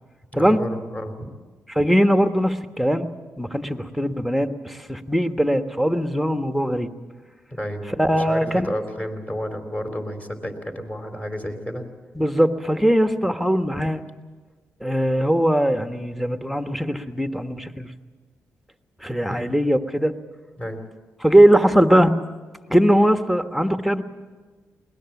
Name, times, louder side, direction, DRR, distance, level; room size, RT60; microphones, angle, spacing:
voice 1, 0.3-1.3 7.5-7.9 8.1-11.9 19.3-19.4 20.6-20.8, equal, 20° left, 5 dB, 4.2 m, -31 dB
voice 2, 1.7-3.1 3.4-6.9 7.9-8.7 12.1-14.0 14.8-17.9 19.0-20.1 21.2-22.1 22.7-24.0, equal, ahead, 7 dB, 1.4 m, -20 dB
21.0 x 19.5 x 7.2 m, 1.4 s
supercardioid pair, 50°, 6 cm